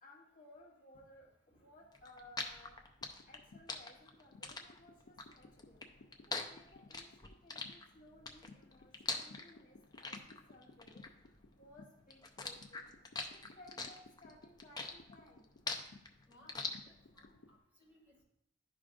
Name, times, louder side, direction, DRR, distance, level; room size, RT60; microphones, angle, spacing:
voice 1, 0.0-2.8 3.3-5.8 6.2-12.9 13.3-15.5, left 1 dB, 45° left, -2 dB, 1.2 m, -60 dB
sound 1, 1.9-11.8 12.1-17.3, left 4 dB, 20° left, 0.6 m, -43 dB
sound 2, 3.0-17.6, left 3 dB, 75° left, 0.5 m, -61 dB
voice 2, 16.3-18.2, left 1 dB, 10° right, -4 dB, 2.0 m, -65 dB
11.5 x 4.9 x 2.5 m, 0.78 s
head